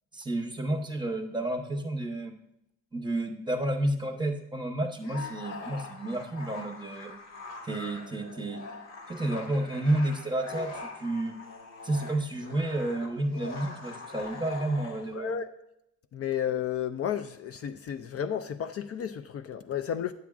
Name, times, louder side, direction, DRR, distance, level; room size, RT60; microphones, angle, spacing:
voice 1, 0.1-2.3 2.9-7.1 7.6-8.6 9.1-11.3 11.8-15.3, right 1 dB, 15° right, 4 dB, 0.9 m, -31 dB
sound 1, 5.0-15.1, left 3 dB, 85° left, 1.7 m, -43 dB
voice 2, 15.1-15.5 16.1-20.1, left 9 dB, 50° left, 9 dB, 0.5 m, -32 dB
9.3 x 7.2 x 2.4 m, 0.80 s
cardioid pair, 90°, 30 cm